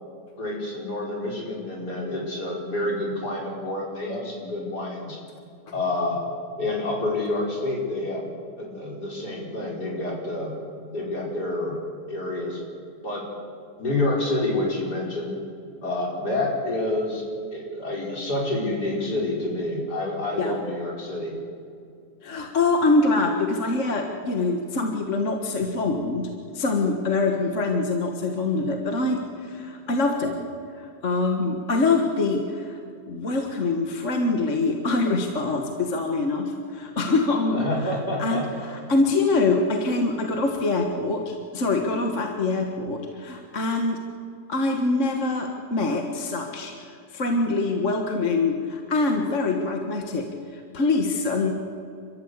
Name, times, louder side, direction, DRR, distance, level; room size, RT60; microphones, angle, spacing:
voice 1, 0.4-5.2 5.7-6.2 6.6-8.3 8.6-10.5 10.9-11.8 12.1-12.6 13.0-13.2 13.8-15.4 15.8-17.2 17.5-21.3 37.5-38.5, left 2 dB, 70° left, -2 dB, 5.4 m, -28 dB
voice 2, 22.2-26.3 26.5-30.4 30.8-32.8 33.1-37.9 38.2-44.0 44.5-50.3 50.5-51.5, left 3 dB, 50° left, 3 dB, 1.8 m, -24 dB
29.5 x 13.5 x 8.2 m, 2.4 s
omnidirectional pair, 1.8 m